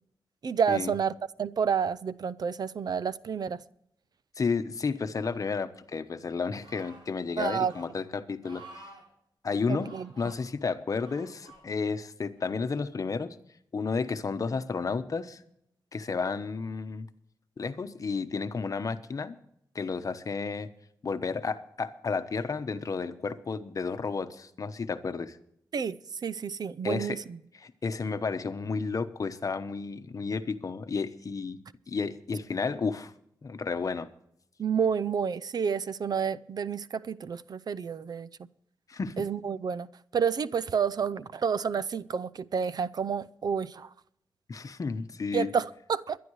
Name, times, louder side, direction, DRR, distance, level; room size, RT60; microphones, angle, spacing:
voice 1, 0.4-3.6 7.4-7.7 9.7-10.1 25.7-27.2 34.6-38.3 39.2-39.9 40.1-43.9 45.3-46.2, right 6 dB, 60° right, 0.5 m, -29 dB
voice 2, 4.4-8.6 9.4-13.4 13.7-15.4 15.9-17.1 17.6-19.4 19.7-20.7 21.0-25.4 26.8-27.2 27.5-31.6 31.9-33.1 33.4-34.1 38.9-39.2 44.5-45.5, left 4 dB, 50° left, 1.0 m, -32 dB
sound 1, 6.6-7.1 7.6-7.9 8.4-9.0 9.8-10.4 10.9-11.6 12.4-12.5, right 2 dB, 80° right, 6.7 m, -50 dB
22.0 x 11.0 x 3.2 m
wide cardioid pair, 110°, 8 cm